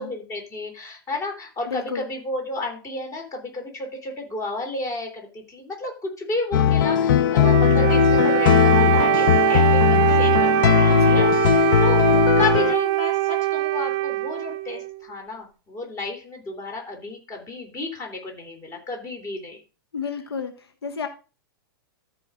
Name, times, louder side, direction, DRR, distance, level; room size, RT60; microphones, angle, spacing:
voice 1, 0.0-19.6, left 2 dB, 25° left, 3 dB, 3.3 m, -32 dB
voice 2, 1.7-2.0 10.9-11.2 19.9-21.1, left 6 dB, 85° left, 8 dB, 1.1 m, -32 dB
sound 1, 6.5-12.7, left 9 dB, 55° left, 0.7 m, -18 dB
Wind instrument woodwind instrument, 7.4-15.0, right 15 dB, 40° right, 0.6 m, -22 dB
13.5 x 5.0 x 3.7 m, 0.34 s
hypercardioid pair, 120°, 13 cm